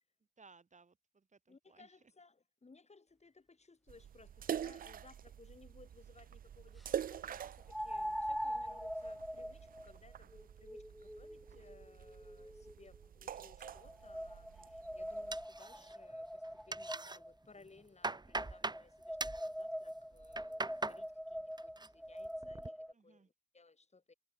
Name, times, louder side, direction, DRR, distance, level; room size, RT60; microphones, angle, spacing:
voice 1, 0.4-2.0 8.7-8.8 22.9-23.3, right 4 dB, 55° right, 3.9 m, -63 dB
voice 2, 1.5-24.1, left 3 dB, 50° left, 5.9 m, -62 dB
sound 1, 3.9-15.4, right 9 dB, 80° right, 0.4 m, -46 dB
sound 2, 5.1-5.2 7.7-12.9 13.6-17.3 18.3-22.9, equal, ahead, 0.5 m, -43 dB
sound 3, 15.3-16.1 16.4-17.2 17.6-18.8 19.2-19.5 20.1-21.0 21.4-21.9 22.2-22.7, right 3 dB, 30° right, 1.3 m, -41 dB
cardioid pair, 45°, 14 cm